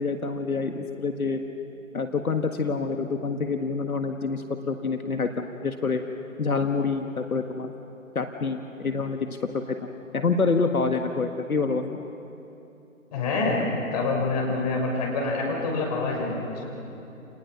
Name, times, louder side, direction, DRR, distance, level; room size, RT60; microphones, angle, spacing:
voice 1, 0.0-1.4 1.9-6.0 6.4-7.7 8.2-9.8 10.1-12.0, left 4 dB, 80° left, 5 dB, 1.7 m, -27 dB
voice 2, 13.1-13.7 13.9-16.7, left 3 dB, 30° left, -1 dB, 6.0 m, -26 dB
29.5 x 29.5 x 6.0 m, 2.9 s
figure-of-eight pair, 150°, 43 cm